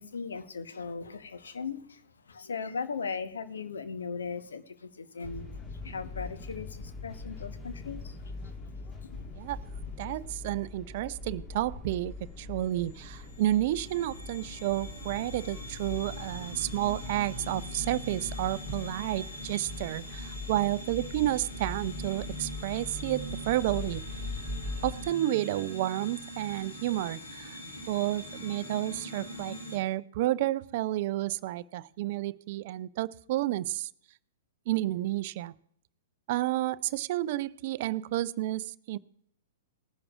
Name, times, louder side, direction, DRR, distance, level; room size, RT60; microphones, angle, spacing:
voice 1, 0.0-5.4 5.8-8.2 8.4-8.6 9.0-9.2, left 5 dB, 70° left, 1.1 m, -38 dB
sound 1, 5.2-25.1, left 3 dB, 20° left, 1.7 m, -42 dB
voice 2, 10.0-24.0 24.8-27.6 27.9-33.9 34.7-35.5 36.3-39.0, right 15 dB, 45° right, 0.4 m, -31 dB
sound 2, 11.8-29.8, equal, 85° left, 5.9 m, -43 dB
20.0 x 10.5 x 2.4 m
figure-of-eight pair, 110°, 0 cm